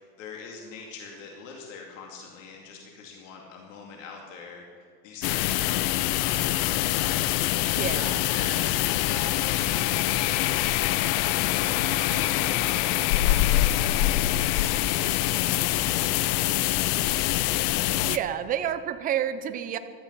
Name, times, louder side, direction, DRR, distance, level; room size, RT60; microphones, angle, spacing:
voice 1, 0.0-4.6 5.0-7.5 7.9-11.0 11.4-16.5, left 5 dB, 90° left, 0 dB, 2.5 m, -43 dB
sound 1, 5.2-18.2, left 15 dB, 40° left, 0.4 m, -24 dB
voice 2, 7.7-8.2 18.0-19.8, right 10 dB, 25° right, 11 dB, 0.6 m, -29 dB
15.5 x 12.5 x 5.6 m, 2.2 s
supercardioid pair, 165°, 37 cm